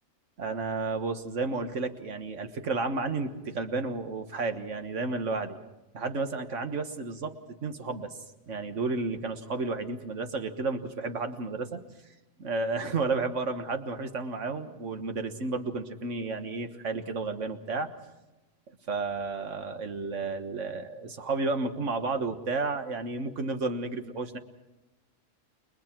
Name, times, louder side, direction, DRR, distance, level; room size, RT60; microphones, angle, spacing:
voice 1, 0.4-5.6 5.9-8.1 8.5-11.8 12.4-17.9 18.9-24.4, right 3 dB, 65° right, 7 dB, 1.8 m, -32 dB
30.0 x 22.5 x 4.5 m, 1.0 s
omnidirectional pair, 1.4 m